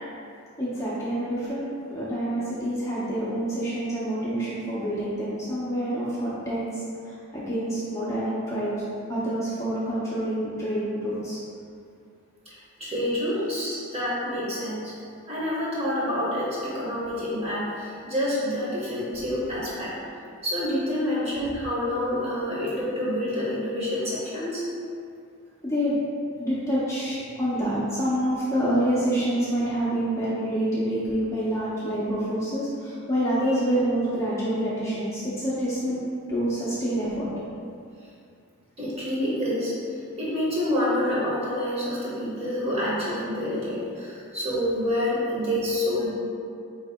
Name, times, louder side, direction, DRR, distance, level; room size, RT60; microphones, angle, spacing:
voice 1, 0.6-6.7 7.3-8.7 9.1-11.4 25.6-26.0 26.4-36.0 36.3-37.3, right 1 dB, 15° left, -9 dB, 0.6 m, -27 dB
voice 2, 12.5-14.9 15.3-19.9 20.4-24.6 38.8-39.7 40.1-46.1, left 1 dB, 30° right, -7 dB, 1.0 m, -27 dB
4.5 x 2.8 x 3.5 m, 2.4 s
head